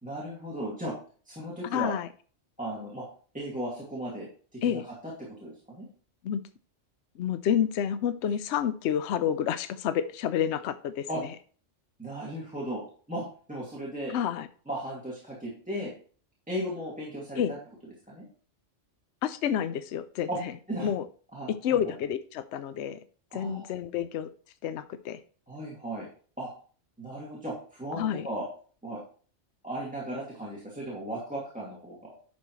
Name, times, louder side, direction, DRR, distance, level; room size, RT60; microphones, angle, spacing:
voice 1, 0.0-1.0 1.3-1.9 2.6-3.0 3.3-5.9 11.1-11.2 12.0-12.8 13.1-13.2 13.5-14.1 14.7-15.9 16.5-17.6 18.1-18.3 20.3-20.4 20.7-20.9 21.3-21.8 23.3-23.7 25.5-26.1 26.4-26.5 27.0-28.5 28.8-29.0 29.6-32.1, right 1 dB, 5° right, -5 dB, 2.2 m, -36 dB
voice 2, 1.6-2.1 4.6-4.8 6.2-6.4 7.2-11.3 14.1-14.5 17.4-17.5 19.2-20.5 20.8-21.1 21.5-23.0 23.3-24.3 24.6-25.2 27.9-28.3, left 9 dB, 75° left, 12 dB, 0.8 m, -29 dB
10.5 x 6.3 x 3.1 m, 0.42 s
omnidirectional pair, 1.2 m